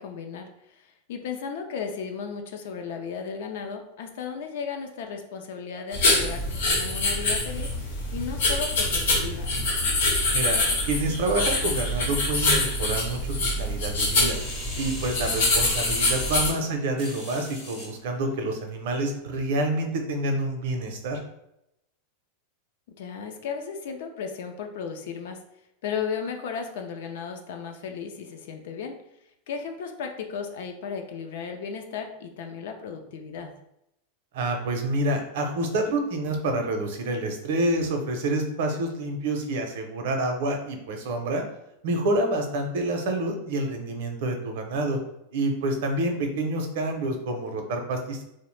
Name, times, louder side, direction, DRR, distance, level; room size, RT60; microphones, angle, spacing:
voice 1, 0.0-9.5 16.5-16.7 23.0-25.4 25.8-29.0 29.5-33.5, left 6 dB, 60° left, 5 dB, 0.4 m, -35 dB
sound 1, 5.9-16.5, left 2 dB, 85° left, 0.9 m, -25 dB
voice 2, 10.8-14.4 14.8-21.2 34.3-41.4 41.8-45.0 45.3-48.2, right 2 dB, 60° right, 4 dB, 0.5 m, -28 dB
sound 2, 14.2-17.9 18.5-18.6, left 2 dB, 30° left, 0.8 m, -38 dB
2.7 x 2.0 x 3.1 m, 0.81 s
supercardioid pair, 170°, 0 cm